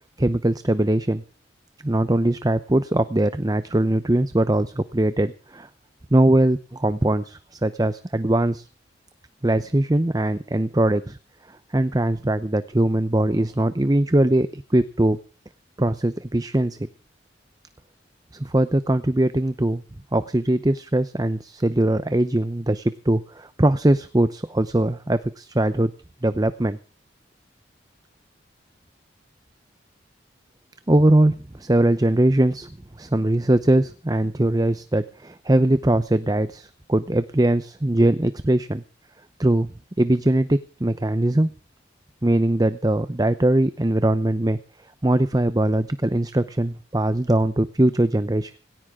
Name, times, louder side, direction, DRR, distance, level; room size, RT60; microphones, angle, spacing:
voice 1, 0.2-1.2 1.8-5.7 6.1-8.7 9.4-11.2 11.7-15.2 15.8-16.8 18.3-19.8 20.1-25.9 26.2-26.8 30.9-32.7 33.0-38.8 39.4-39.7 40.0-41.5 42.2-44.6 45.0-48.5, right 1 dB, 20° right, 12 dB, 0.7 m, -21 dB
18.0 x 17.5 x 3.7 m, 0.36 s
head